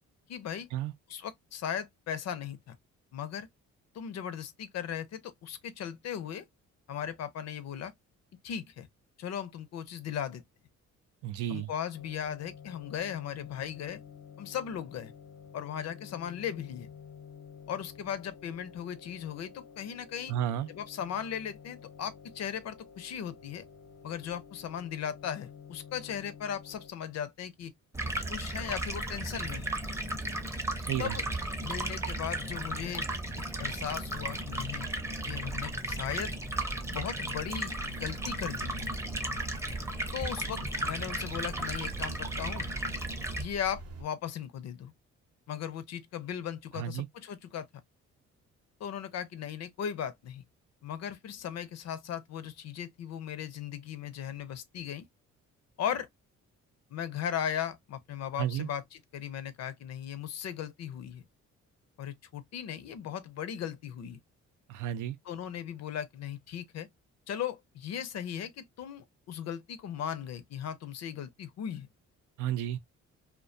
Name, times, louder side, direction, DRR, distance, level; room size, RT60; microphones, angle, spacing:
voice 1, 0.3-0.7 1.1-2.8 3.1-3.5 3.9-6.5 6.9-7.9 8.4-8.9 9.2-10.4 11.5-14.0 14.4-15.1 15.5-16.9 17.7-20.3 20.7-23.7 24.0-27.7 28.3-29.7 31.0-31.2 31.6-33.0 33.6-34.9 35.2-36.4 36.9-38.9 40.1-42.7 43.4-44.9 45.5-47.7 48.8-50.4 50.8-55.1 55.8-56.1 56.9-61.2 62.0-64.2 65.3-66.9 67.3-71.9, left 9 dB, 60° left, 0.5 m, -37 dB
voice 2, 11.2-11.7 20.3-20.7 30.9-31.2 46.7-47.1 58.4-58.7 64.7-65.2 72.4-72.8, right 11 dB, 90° right, 0.5 m, -32 dB
sound 1, 11.9-26.9, left 7 dB, 90° left, 0.9 m, -51 dB
Stream, 27.9-43.4, right 1 dB, 10° right, 0.5 m, -35 dB
sound 2, 37.7-44.0, right 3 dB, 55° right, 0.7 m, -46 dB
2.3 x 2.2 x 2.4 m
cardioid pair, 90°, 30 cm